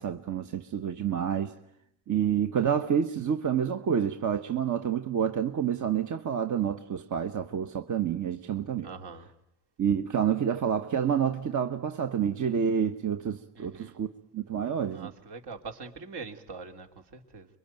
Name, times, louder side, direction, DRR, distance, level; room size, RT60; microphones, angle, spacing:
voice 1, 0.0-1.5 2.1-8.9 9.8-15.1, right 8 dB, 40° right, 1.2 m, -28 dB
voice 2, 8.8-9.3 13.5-14.0 14.9-17.5, right 4 dB, 60° right, 3.3 m, -43 dB
26.0 x 23.0 x 9.2 m
supercardioid pair, 85°, 45 cm